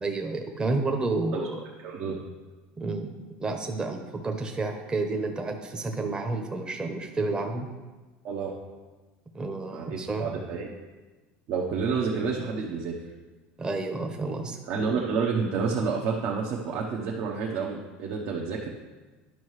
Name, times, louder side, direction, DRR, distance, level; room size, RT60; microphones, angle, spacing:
voice 1, 0.0-1.6 2.8-3.1 3.4-7.7 9.3-10.3 13.6-14.6, right 3 dB, 20° right, 3 dB, 0.8 m, -30 dB
voice 2, 1.8-2.2 8.2-8.5 9.7-10.7 11.5-12.9 14.7-18.7, right 5 dB, 60° right, -2 dB, 1.0 m, -29 dB
11.0 x 5.5 x 3.2 m, 1.3 s
supercardioid pair, 115°, 5 cm